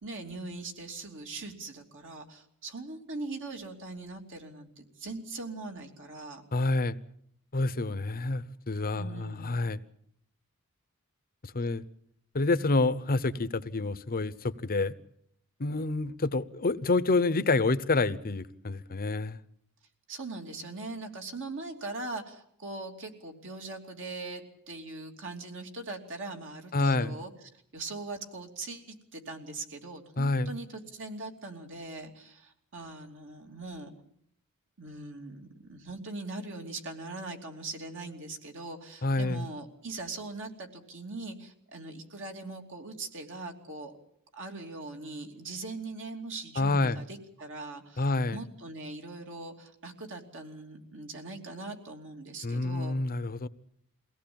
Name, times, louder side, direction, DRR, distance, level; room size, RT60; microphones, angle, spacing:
voice 1, 0.0-6.4 8.9-9.6 20.1-27.3 27.7-33.9 34.8-44.0 44.3-53.0, right 3 dB, 60° right, 3 dB, 2.9 m, -41 dB
voice 2, 6.5-7.0 7.5-9.8 11.4-11.8 12.3-14.9 15.6-19.4 26.7-27.2 30.2-30.5 39.0-39.4 46.6-47.0 48.0-48.4 52.4-53.5, left 3 dB, 40° left, 15 dB, 0.8 m, -28 dB
23.0 x 17.5 x 8.7 m, 0.70 s
head